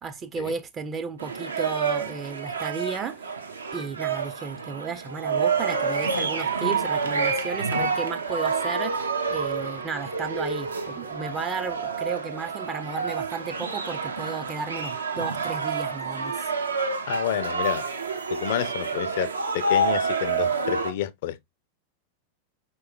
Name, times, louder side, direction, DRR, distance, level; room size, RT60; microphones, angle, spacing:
voice 1, 0.0-3.3 3.7-16.5, right 5 dB, 25° right, 0.4 m, -34 dB
sound 1, 1.2-20.9, right 4 dB, 75° right, 0.6 m, -28 dB
voice 2, 17.1-17.8 18.3-21.4, left 12 dB, 50° left, 0.4 m, -29 dB
4.7 x 3.0 x 2.3 m
figure-of-eight pair, 90°, 0 cm